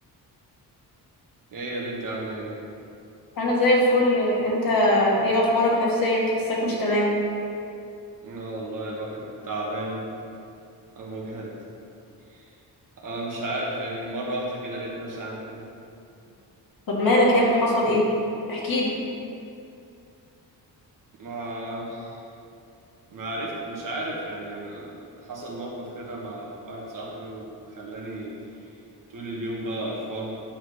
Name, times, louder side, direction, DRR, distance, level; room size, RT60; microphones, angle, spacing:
voice 1, 1.5-2.5 8.2-10.0 10.9-11.5 12.3-12.4 13.0-15.6 21.2-22.2 23.1-24.9 25.3-28.3 29.1-30.3, right 1 dB, 50° right, -4 dB, 1.7 m, -33 dB
voice 2, 3.4-7.1 16.9-18.1 18.5-18.9, left 1 dB, 55° left, -4 dB, 1.9 m, -21 dB
10.5 x 7.3 x 3.2 m, 2.6 s
wide cardioid pair, 155°, 40 cm